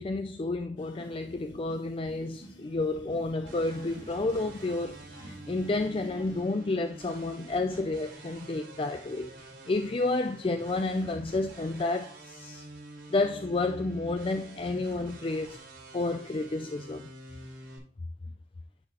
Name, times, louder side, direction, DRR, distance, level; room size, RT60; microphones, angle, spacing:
voice 1, 0.0-12.6 13.1-15.6 15.9-17.1, left 2 dB, 30° left, 0.4 m, -31 dB
sound 1, 0.8-6.4, equal, 80° left, 1.6 m, -49 dB
sound 2, 3.5-17.8, right 2 dB, 85° right, 3.4 m, -48 dB
10.5 x 4.9 x 3.0 m
head